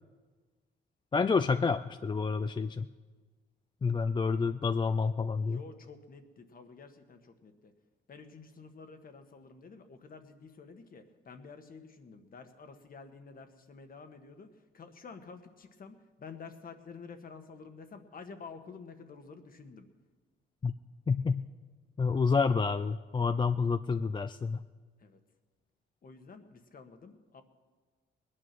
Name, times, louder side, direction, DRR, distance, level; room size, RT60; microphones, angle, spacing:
voice 1, 1.1-2.9 3.8-5.6 20.6-20.7 21.1-21.4 22.0-24.6, left 5 dB, 25° left, 10 dB, 0.4 m, -29 dB
voice 2, 5.5-7.7 8.1-19.9 25.0-25.2 26.0-27.4, left 5 dB, 45° left, 7 dB, 1.5 m, -50 dB
20.0 x 9.9 x 6.0 m, 1.4 s
cardioid pair, 90°, 20 cm